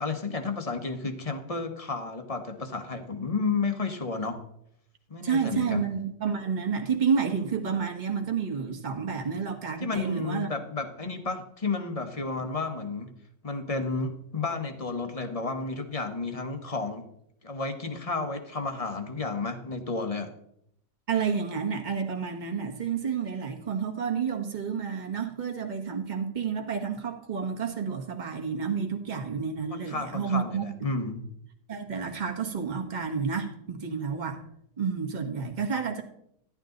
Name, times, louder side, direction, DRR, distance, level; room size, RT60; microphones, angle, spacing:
voice 1, 0.0-4.4 5.1-5.9 9.8-13.1 13.4-17.1 17.4-20.3 29.7-31.2, left 3 dB, 25° left, 1.1 m, -32 dB
voice 2, 5.2-10.5 21.1-30.6 31.7-34.4 34.8-36.0, right 6 dB, 25° right, 1.6 m, -30 dB
14.0 x 11.0 x 3.9 m
omnidirectional pair, 1.9 m